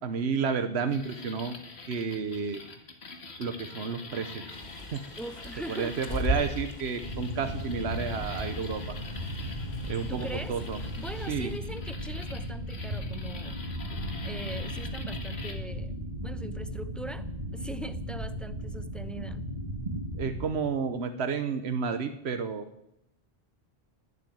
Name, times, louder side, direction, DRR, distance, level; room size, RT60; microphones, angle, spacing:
voice 1, 0.0-1.6 1.9-2.6 3.4-4.6 4.9-5.0 5.7-8.9 9.9-10.8 11.3-11.5 20.1-22.7, right 5 dB, 75° right, 8 dB, 1.3 m, -31 dB
sound 1, 0.9-15.6, left 3 dB, 70° left, 2.0 m, -45 dB
Bird, 4.5-11.6, right 1 dB, 40° left, 1.8 m, -39 dB
voice 2, 5.2-6.0 10.1-10.6 11.0-13.6 14.2-15.9 16.2-17.3 17.5-19.4, right 1 dB, ahead, 11 dB, 0.7 m, -41 dB
sound 2, 7.0-20.5, equal, 40° right, 2.5 m, -36 dB
18.0 x 8.4 x 9.3 m, 0.81 s
omnidirectional pair, 1.1 m